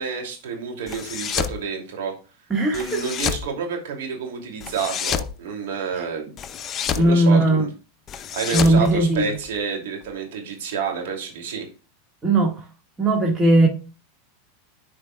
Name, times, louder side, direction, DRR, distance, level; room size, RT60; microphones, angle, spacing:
voice 1, 0.0-2.1 2.7-6.3 6.9-7.7 8.3-11.7, right 6 dB, 75° right, 2.7 m, -29 dB
sound 1, 0.9-1.6 2.7-3.5 4.6-5.3 6.4-7.1 8.1-9.6, left 8 dB, 35° left, 0.7 m, -28 dB
voice 2, 2.5-3.1 7.0-7.7 8.5-9.3 12.2-12.6 13.0-13.7, right 1 dB, 20° right, 1.9 m, -18 dB
11.0 x 4.9 x 2.3 m
hypercardioid pair, 105°, 0 cm